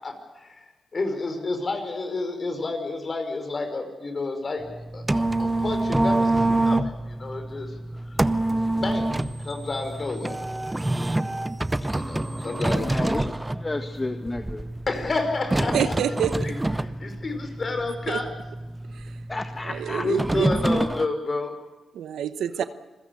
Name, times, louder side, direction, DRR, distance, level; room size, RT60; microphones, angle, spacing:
voice 1, 0.0-4.6 4.9-7.7 8.1-8.3 8.7-10.5 11.9-13.2 14.9-15.9 16.4-18.3 20.0-21.5, left 3 dB, 50° left, 6 dB, 4.8 m, -30 dB
sound 1, 4.6-21.0, right 2 dB, 20° right, 0.8 m, -27 dB
voice 2, 12.8-14.6 19.3-20.0 22.6-22.7, left 2 dB, 30° left, 6 dB, 1.6 m, -32 dB
voice 3, 15.7-16.5 18.1-18.2 18.9-19.2 19.6-20.5 21.9-22.6, right 8 dB, 80° right, 13 dB, 0.9 m, -27 dB
27.0 x 15.5 x 8.3 m, 1.1 s
supercardioid pair, 40°, 0 cm